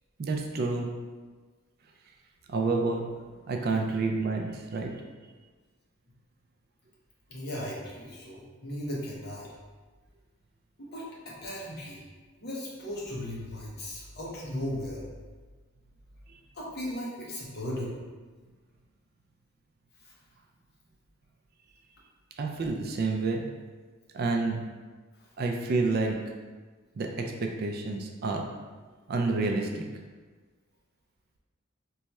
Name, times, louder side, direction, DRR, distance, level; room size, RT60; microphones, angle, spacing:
voice 1, 0.2-0.9 2.5-3.0 3.5-4.9 22.4-23.4 24.1-24.6 25.4-26.2 27.0-28.4 29.1-29.8, right 3 dB, 45° right, 2 dB, 0.3 m, -29 dB
voice 2, 7.3-9.5 10.8-12.0 12.4-15.1 16.5-17.9 20.0-20.1, left 1 dB, 50° left, -4 dB, 0.9 m, -37 dB
3.1 x 2.3 x 4.1 m, 1.4 s
head